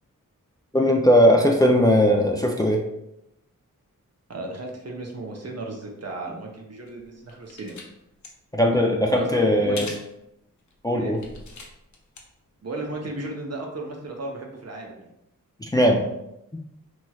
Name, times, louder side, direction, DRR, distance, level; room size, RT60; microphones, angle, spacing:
voice 1, 0.7-2.8 8.5-9.9 10.8-11.2 15.7-16.1, equal, 10° left, 1 dB, 0.4 m, -19 dB
voice 2, 4.3-7.8 9.1-9.8 11.0-11.2 12.6-15.1, right 2 dB, 50° right, 0 dB, 0.8 m, -35 dB
sound 1, 6.9-7.9 8.1-8.3 9.8-10.1 10.6-10.7 11.1-12.2 12.5-12.6, left 3 dB, 60° left, 0.7 m, -39 dB
3.1 x 2.9 x 2.3 m, 0.83 s
cardioid pair, 40°, 33 cm